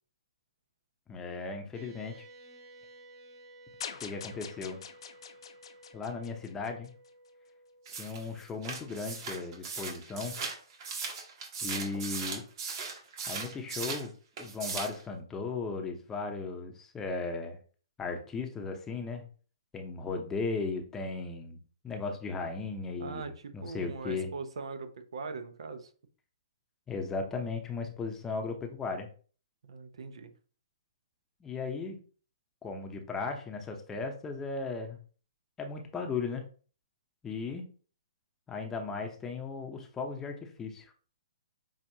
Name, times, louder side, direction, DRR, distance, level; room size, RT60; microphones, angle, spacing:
voice 1, 1.1-2.2 4.0-4.8 5.9-6.9 7.9-10.4 11.6-12.4 13.3-14.1 14.4-17.6 18.0-19.2 19.7-21.6 21.8-24.3 26.9-29.1 31.4-32.0 32.6-35.0 35.6-36.4 37.2-37.6 38.5-40.9, left 4 dB, 15° left, 3 dB, 0.7 m, -36 dB
sound 1, 1.7-10.4, right 1 dB, 30° right, 0.8 m, -56 dB
sound 2, 3.8-7.1, left 7 dB, 65° left, 0.6 m, -45 dB
sound 3, 7.9-14.1 14.4-15.0, right 5 dB, 45° right, 1.5 m, -38 dB
voice 2, 23.0-25.9 29.6-30.3, right 4 dB, 75° right, 8 dB, 0.8 m, -41 dB
6.0 x 2.4 x 2.8 m, 0.41 s
hypercardioid pair, 140°, 3 cm